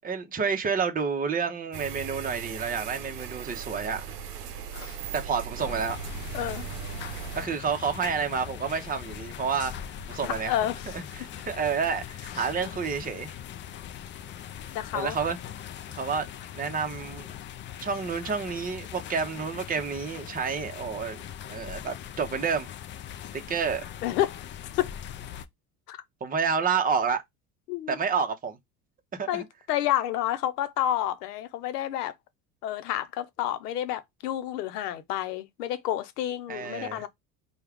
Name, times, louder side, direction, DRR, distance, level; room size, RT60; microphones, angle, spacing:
voice 1, 0.0-4.1 5.1-6.0 7.3-9.7 10.1-10.5 10.9-13.3 14.9-15.4 15.9-16.3 16.5-17.3 17.8-21.2 21.5-22.7 23.5-23.8 26.2-27.2 27.9-28.6 29.1-29.4 36.5-37.0, right 6 dB, 20° right, 0.8 m, -29 dB
sound 1, 1.7-7.5, right 8 dB, 90° right, 0.7 m, -38 dB
sound 2, 5.6-25.5, left 9 dB, 25° left, 0.3 m, -41 dB
voice 2, 10.2-11.0 12.3-12.5 14.7-15.2 24.0-24.4 24.8-24.9 25.9-26.0 27.7-28.0 29.3-32.1 32.6-37.1, left 12 dB, 80° left, 0.8 m, -30 dB
4.4 x 2.4 x 3.4 m
hypercardioid pair, 75°, 46 cm